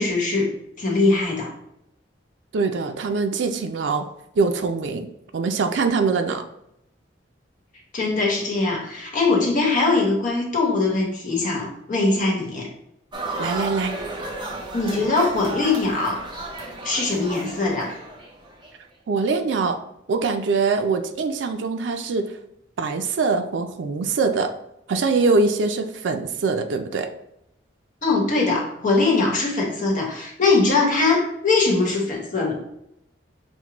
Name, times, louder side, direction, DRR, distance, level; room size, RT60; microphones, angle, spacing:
voice 1, 0.0-1.5 7.9-12.7 14.7-16.3 16.8-18.0 28.0-32.5, left 3 dB, 45° left, -1 dB, 1.1 m, -21 dB
voice 2, 2.5-4.1 4.4-5.1 5.3-6.4 13.4-13.9 19.1-19.8 20.1-22.4 22.8-24.5 24.9-27.1, right 4 dB, 80° right, 6 dB, 0.4 m, -23 dB
sound 1, 13.1-18.7, right 2 dB, 25° right, 0.6 m, -33 dB
6.1 x 2.1 x 2.9 m, 0.79 s
head